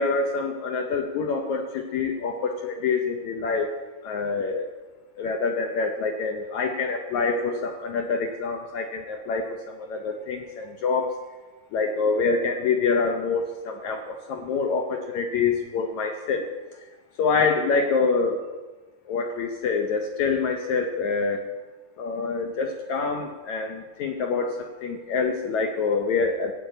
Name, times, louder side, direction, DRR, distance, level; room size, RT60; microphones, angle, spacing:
voice 1, 0.0-3.8 4.0-4.7 5.2-11.1 11.7-16.4 17.2-18.4 19.1-21.4 22.0-26.5, left 4 dB, 75° left, 4 dB, 1.7 m, -26 dB
15.5 x 7.7 x 9.0 m, 1.2 s
omnidirectional pair, 4.7 m